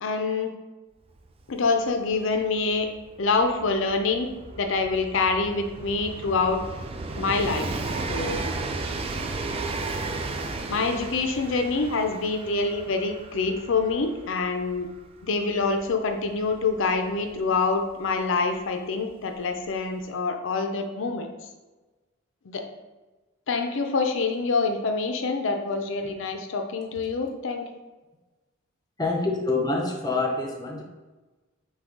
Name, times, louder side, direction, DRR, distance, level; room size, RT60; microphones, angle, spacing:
voice 1, 0.0-0.5 1.5-2.9 3.2-4.3 4.6-6.6 7.2-7.7 8.1-8.4 10.7-14.9 15.2-21.3 22.4-22.6 23.5-27.7, left 4 dB, 60° left, 5 dB, 0.5 m, -26 dB
Train, 1.2-1.3 1.5-18.1 19.1-19.2, right 3 dB, 25° right, 0.3 m, -35 dB
voice 2, 29.0-30.8, left 3 dB, 20° left, 1 dB, 0.6 m, -26 dB
5.9 x 2.3 x 3.7 m, 1.2 s
head